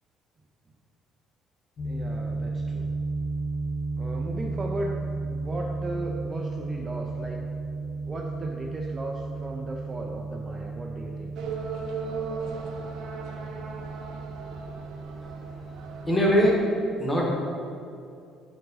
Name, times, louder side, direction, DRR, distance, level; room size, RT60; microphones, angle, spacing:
sound 1, 1.8-16.2, right 3 dB, 35° left, 0.5 m, -34 dB
voice 1, 1.8-2.9 4.0-7.4 8.1-11.3, right 2 dB, 20° right, -1 dB, 0.4 m, -36 dB
sound 2, 11.3-16.6, right 5 dB, 65° right, 0.6 m, -37 dB
voice 2, 16.0-16.5 17.0-17.3, equal, 10° left, -3 dB, 1.1 m, -21 dB
6.3 x 4.6 x 4.0 m, 2.5 s
cardioid pair, 170°, 0 cm